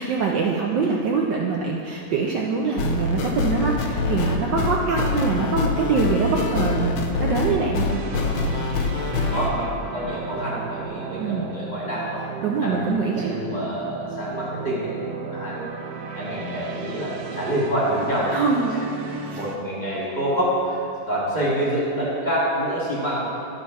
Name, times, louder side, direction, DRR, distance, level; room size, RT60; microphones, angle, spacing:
voice 1, 0.0-8.0 11.2-11.5 12.4-13.4 18.3-18.7 19.3-19.4, right 4 dB, 70° right, -1 dB, 1.1 m, -24 dB
sound 1, 2.8-9.5, left 3 dB, 80° left, 1.6 m, -24 dB
sound 2, 7.9-19.6, right 6 dB, 90° right, 0.8 m, -35 dB
voice 2, 9.3-12.2 12.6-15.7 16.1-18.4 19.0-20.8 21.1-23.3, equal, 25° left, -7 dB, 1.5 m, -27 dB
10.5 x 3.9 x 5.8 m, 2.6 s
omnidirectional pair, 2.3 m